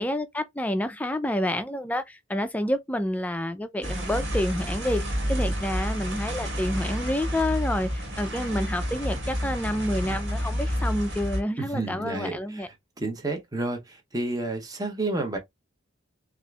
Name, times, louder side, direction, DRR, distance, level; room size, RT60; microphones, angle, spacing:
voice 1, 0.0-12.7, left 1 dB, 5° left, 0.3 m, -29 dB
sound 1, 3.8-11.4, equal, 55° right, 1.7 m, -29 dB
voice 2, 11.6-12.6 13.0-15.4, right 2 dB, 20° right, 0.7 m, -30 dB
6.2 x 2.5 x 2.3 m
head